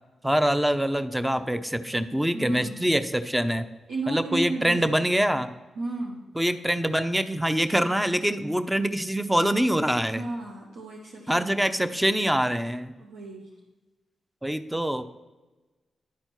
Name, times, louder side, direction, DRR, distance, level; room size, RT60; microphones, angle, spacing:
voice 1, 0.2-3.7 4.1-5.5 6.4-10.2 11.3-12.9 14.4-15.0, equal, 10° right, 10 dB, 0.7 m, -24 dB
voice 2, 2.3-2.9 3.9-5.1 5.8-6.3 10.1-11.9 13.0-13.5, right 2 dB, 85° right, -3 dB, 0.8 m, -34 dB
10.5 x 4.4 x 4.5 m, 1.2 s
supercardioid pair, 40°, 0 cm